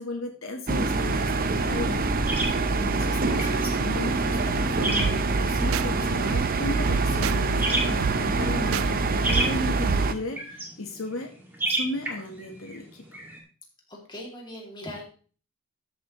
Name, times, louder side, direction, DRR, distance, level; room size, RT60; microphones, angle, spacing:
voice 1, 0.0-2.0 2.8-11.3 11.7-13.2, left 2 dB, 65° left, 4 dB, 1.2 m, -35 dB
sound 1, 0.7-10.1, right 3 dB, 40° right, 0.7 m, -25 dB
sound 2, 1.9-13.4, right 2 dB, 10° right, 2.1 m, -34 dB
sound 3, 4.4-10.1, right 5 dB, 70° right, 0.4 m, -31 dB
voice 2, 13.9-15.0, left 1 dB, 20° left, -1 dB, 2.5 m, -39 dB
13.5 x 7.1 x 3.1 m, 0.40 s
head